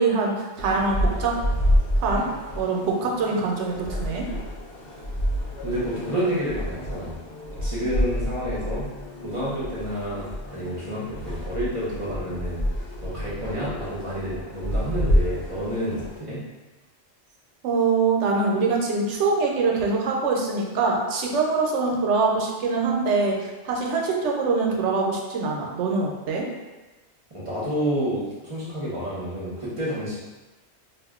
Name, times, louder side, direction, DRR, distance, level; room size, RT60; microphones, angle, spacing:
voice 1, 0.0-1.3 2.0-2.3 2.5-4.3 17.6-26.5, right 4 dB, 80° right, -1 dB, 0.9 m, -24 dB
sound 1, 0.6-16.2, equal, 60° left, 0.8 m, -28 dB
voice 2, 5.6-7.2 7.5-8.9 9.2-12.6 13.0-16.4 27.3-30.2, equal, 30° right, -8 dB, 0.7 m, -29 dB
2.5 x 2.1 x 3.5 m, 1.2 s
omnidirectional pair, 1.2 m